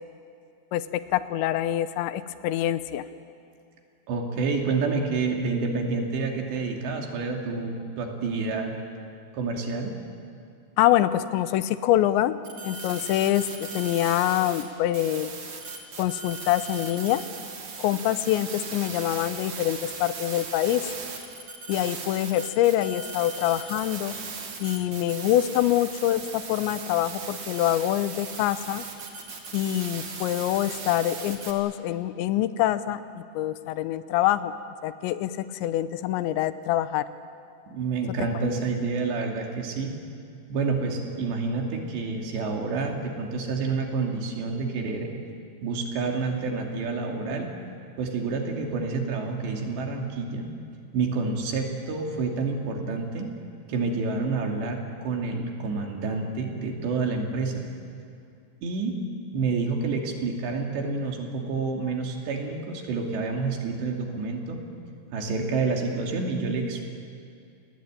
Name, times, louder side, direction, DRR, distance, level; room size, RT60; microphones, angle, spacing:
voice 1, 0.7-3.0 10.8-12.4 12.6-15.4 16.0-17.2 17.8-20.9 21.7-24.2 24.6-28.9 29.5-34.5 34.8-37.0, left 13 dB, 85° left, 13 dB, 3.1 m, -25 dB
voice 2, 4.1-8.7 9.3-9.9 37.7-40.0 40.5-45.1 45.6-47.5 48.0-50.5 50.9-53.3 53.7-57.6 58.6-59.0 59.3-64.6 65.1-66.8, right 4 dB, 75° right, 1 dB, 4.8 m, -28 dB
sound 1, 12.4-14.6 14.9-31.5, right 4 dB, 45° right, 3.2 m, -38 dB
29.0 x 19.0 x 9.1 m, 2.5 s
omnidirectional pair, 5.1 m